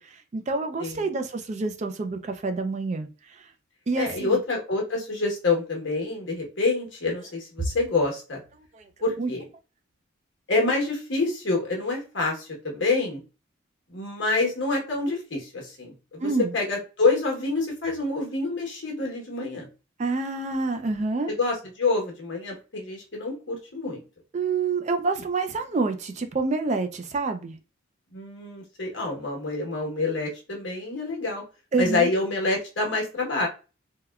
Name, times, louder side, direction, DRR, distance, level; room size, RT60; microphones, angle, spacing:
voice 1, 0.0-3.5 3.9-4.4 8.7-8.9 9.2-9.3 16.2-16.5 20.0-21.3 24.3-27.5 31.7-32.1, right 3 dB, 35° right, 0.3 m, -27 dB
voice 2, 3.9-8.4 9.0-9.4 10.5-13.2 13.9-19.7 21.3-24.0 28.1-31.4 31.8-33.5, left 3 dB, 60° left, 1.0 m, -27 dB
3.5 x 2.2 x 2.2 m
head